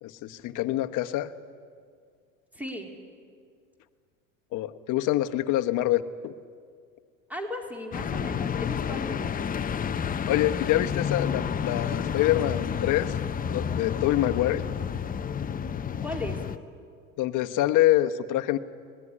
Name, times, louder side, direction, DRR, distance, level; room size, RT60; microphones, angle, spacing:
voice 1, 0.0-1.3 4.5-6.3 10.3-13.2 13.5-14.6 17.2-18.6, left 14 dB, 50° left, 8 dB, 1.2 m, -25 dB
voice 2, 2.5-2.9 7.3-9.4 16.0-16.4, left 1 dB, 5° right, 3 dB, 3.4 m, -36 dB
sound 1, 7.9-16.6, left 7 dB, 20° left, 0.8 m, -30 dB
25.0 x 19.0 x 9.9 m, 2.1 s
supercardioid pair, 100°, 39 cm